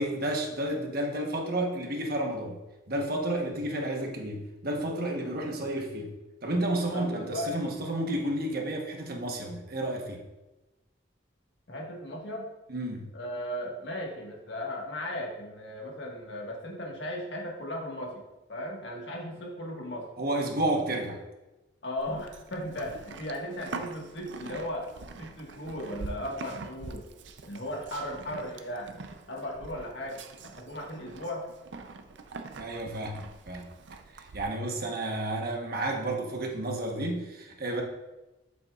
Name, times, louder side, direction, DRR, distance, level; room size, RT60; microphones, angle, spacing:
voice 1, 0.0-2.6 2.9-6.1 6.4-10.2 12.7-13.1 20.2-21.2 32.5-33.2 33.5-33.7 34.1-37.8, right 1 dB, 55° right, 1 dB, 1.1 m, -31 dB
voice 2, 6.9-7.7 11.7-12.5 13.1-20.1 21.8-24.9 25.2-27.1 27.4-28.9 29.3-31.5, left 1 dB, 65° left, -1 dB, 1.5 m, -36 dB
Livestock farm animals working animals, 22.0-34.4, right 3 dB, 70° right, 0.5 m, -44 dB
8.0 x 6.9 x 2.4 m, 1.0 s
head